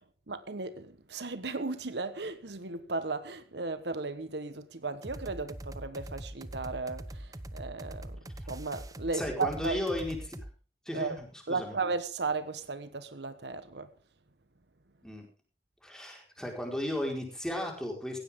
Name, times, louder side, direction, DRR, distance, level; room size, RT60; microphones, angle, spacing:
voice 1, 0.3-8.2 8.5-9.8 10.9-11.2 11.5-13.9, right 3 dB, 70° right, 1.2 m, -35 dB
sound 1, 5.0-10.5, right 1 dB, 20° right, 0.9 m, -42 dB
voice 2, 9.1-10.4 10.8-11.7 15.0-15.3 15.8-18.2, left 1 dB, 5° left, 4.7 m, -35 dB
17.5 x 16.0 x 3.7 m
head